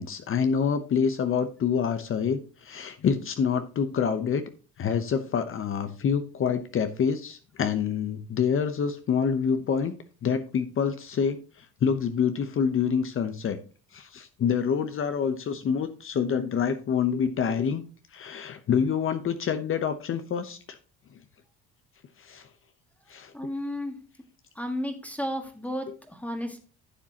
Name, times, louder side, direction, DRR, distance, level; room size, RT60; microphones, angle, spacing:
voice 1, 0.0-4.4 4.8-9.9 10.2-13.6 13.9-17.8 18.1-20.8 22.2-22.5 23.1-23.3, left 7 dB, 40° left, 9 dB, 0.9 m, -27 dB
voice 2, 23.3-24.0 24.5-26.6, equal, 5° left, 4 dB, 1.7 m, -33 dB
11.5 x 7.2 x 2.9 m, 0.36 s
cardioid pair, 100°, 31 cm